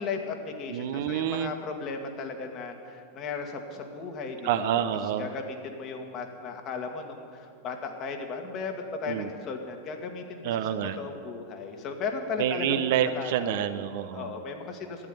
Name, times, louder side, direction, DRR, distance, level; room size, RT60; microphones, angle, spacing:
voice 1, 0.0-4.8 5.2-10.7 11.0-12.8 13.1-13.7 14.1-15.1, left 4 dB, 35° left, 4 dB, 1.9 m, -36 dB
voice 2, 0.7-1.5 4.4-5.3 9.1-9.3 10.4-11.0 12.4-14.3, right 10 dB, 50° right, 10 dB, 0.7 m, -28 dB
12.5 x 10.0 x 9.3 m, 2.3 s
figure-of-eight pair, 90°, 0 cm